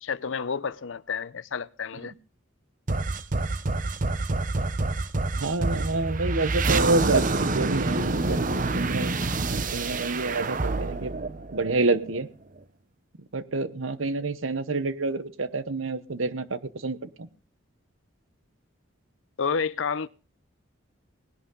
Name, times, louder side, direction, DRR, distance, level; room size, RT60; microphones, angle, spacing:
voice 1, 0.0-2.1 19.4-20.1, left 6 dB, 70° left, 0.6 m, -30 dB
sound 1, 2.9-12.2, right 3 dB, 40° right, 0.8 m, -27 dB
voice 2, 5.4-8.4 8.7-9.1 9.7-11.1 11.5-12.3 13.3-17.3, right 3 dB, 80° right, 1.0 m, -28 dB
19.0 x 11.0 x 3.8 m
head